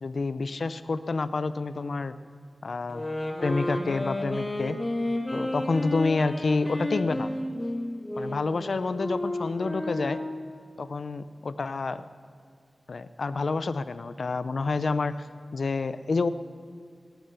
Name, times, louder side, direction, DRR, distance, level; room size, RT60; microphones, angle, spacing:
voice 1, 0.0-2.1 2.6-3.0 3.4-4.8 5.3-7.3 8.2-10.2 10.8-12.0 12.9-15.3 15.5-16.3, left 3 dB, 70° left, 13 dB, 0.6 m, -28 dB
sound 1, 2.9-10.5, left 1 dB, 25° left, 2.0 m, -32 dB
21.5 x 9.1 x 6.8 m, 2.2 s
wide cardioid pair, 85°, 0 cm